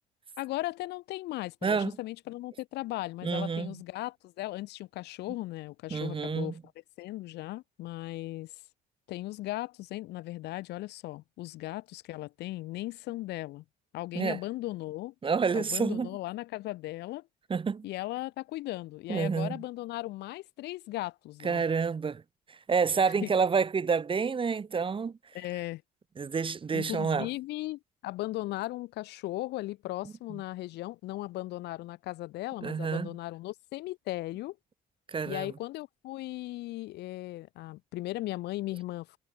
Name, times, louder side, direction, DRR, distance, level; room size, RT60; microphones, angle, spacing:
voice 1, 0.4-6.6 7.0-8.5 9.1-13.6 13.9-15.1 15.5-17.3 17.8-21.6 23.2-23.3 25.3-25.8 26.7-34.6 35.3-39.2, left 17 dB, 85° left, 5.5 m, -37 dB
voice 2, 3.2-3.8 5.9-6.5 14.1-14.4 15.2-16.1 17.5-17.9 19.1-19.6 21.4-22.2 22.7-25.1 26.2-27.3 32.6-33.1 35.1-35.5, right 5 dB, 30° right, 3.5 m, -28 dB
cardioid pair, 110°, 17 cm